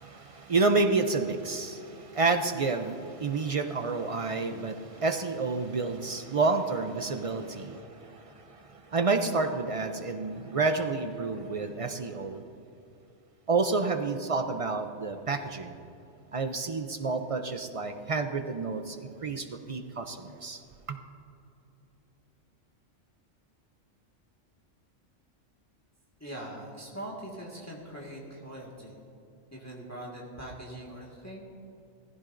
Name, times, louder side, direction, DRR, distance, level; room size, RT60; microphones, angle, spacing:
voice 1, 0.0-12.4 13.5-15.8 16.3-20.6 20.9-21.0, right 3 dB, 50° right, 6 dB, 0.4 m, -29 dB
voice 2, 26.2-29.0 29.5-31.4, right 1 dB, 15° left, -4 dB, 1.6 m, -42 dB
16.5 x 15.0 x 2.6 m, 2.7 s
omnidirectional pair, 1.3 m